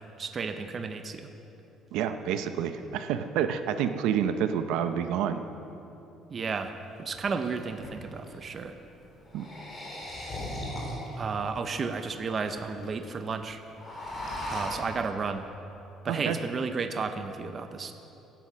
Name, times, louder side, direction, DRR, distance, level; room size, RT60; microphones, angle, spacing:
voice 1, 0.2-1.3 6.3-6.7 7.0-8.8 11.2-13.6 14.5-15.5 16.0-17.9, right 5 dB, 25° right, 8 dB, 0.7 m, -33 dB
voice 2, 1.9-5.4 9.3-9.5 16.1-16.4, right 8 dB, 80° right, 9 dB, 0.7 m, -28 dB
sound 1, 6.5-6.6 7.1-8.3 9.2-11.2 11.8-11.9 12.1-12.2 12.4-12.9 13.2-13.3 13.6-14.8, left 1 dB, 20° left, 3.6 m, -37 dB
16.5 x 10.0 x 6.2 m, 2.9 s
cardioid pair, 170°, 0 cm